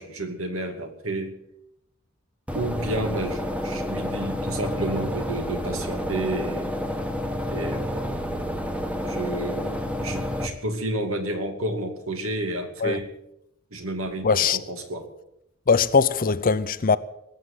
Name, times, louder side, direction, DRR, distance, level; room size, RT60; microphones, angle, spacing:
voice 1, 0.0-1.3 2.5-6.7 7.5-8.4 9.0-13.1 13.7-15.0, right 1 dB, 80° right, 2.5 m, -31 dB
sound 1, 2.5-10.5, equal, 5° right, 1.2 m, -29 dB
voice 2, 14.2-14.6 15.7-17.0, left 5 dB, 40° left, 0.6 m, -20 dB
20.0 x 7.9 x 7.8 m
head